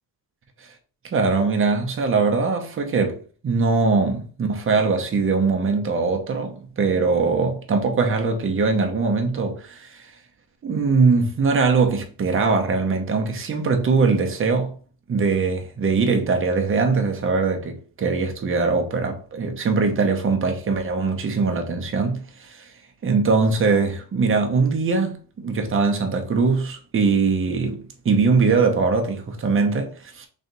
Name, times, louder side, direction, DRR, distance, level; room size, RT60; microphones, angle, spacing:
voice 1, 1.1-3.2 3.4-10.0 10.6-14.7 15.1-22.6 23.0-30.3, right 4 dB, 35° right, 0.8 m, -21 dB
3.2 x 2.8 x 3.9 m
cardioid pair, 140°, 36 cm